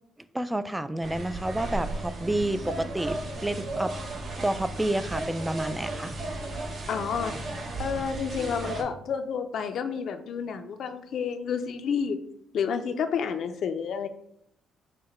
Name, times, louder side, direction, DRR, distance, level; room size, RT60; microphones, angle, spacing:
voice 1, 0.3-4.0 4.4-6.1, right 1 dB, 10° right, 13 dB, 0.3 m, -29 dB
sound 1, 1.0-8.8, right 2 dB, 50° right, 1.0 m, -35 dB
voice 2, 6.9-7.3 7.8-12.2 12.5-14.1, left 6 dB, 65° left, 7 dB, 0.4 m, -30 dB
5.7 x 2.2 x 4.2 m, 0.73 s
cardioid pair, 90°, 0 cm